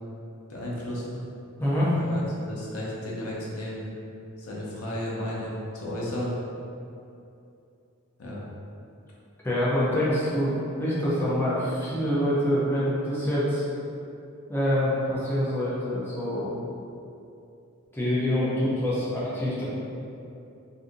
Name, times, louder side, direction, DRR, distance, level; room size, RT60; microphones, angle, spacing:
voice 1, 0.5-1.2 1.9-3.8 4.4-6.4 8.2-8.4, left 1 dB, 85° left, -5 dB, 0.7 m, -33 dB
voice 2, 1.6-1.9 9.4-13.7 14.5-16.5 17.9-19.6, equal, 10° left, -9 dB, 0.5 m, -25 dB
2.7 x 2.6 x 3.6 m, 2.7 s
head